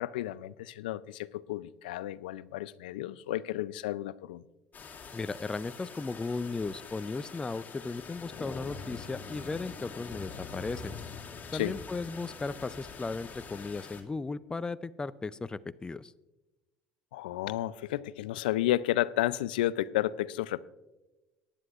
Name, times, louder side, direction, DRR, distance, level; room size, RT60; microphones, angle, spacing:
voice 1, 0.0-4.4 11.5-11.8 17.1-20.6, left 14 dB, 85° left, 0.4 m, -32 dB
sound 1, 4.7-14.0, left 5 dB, 40° left, 2.2 m, -45 dB
voice 2, 5.1-10.9 11.5-16.1, left 3 dB, 15° left, 0.4 m, -36 dB
sound 2, 8.7-13.4 13.7-13.8, left 4 dB, 65° left, 1.1 m, -48 dB
18.5 x 10.0 x 2.4 m
hypercardioid pair, 75°, 5 cm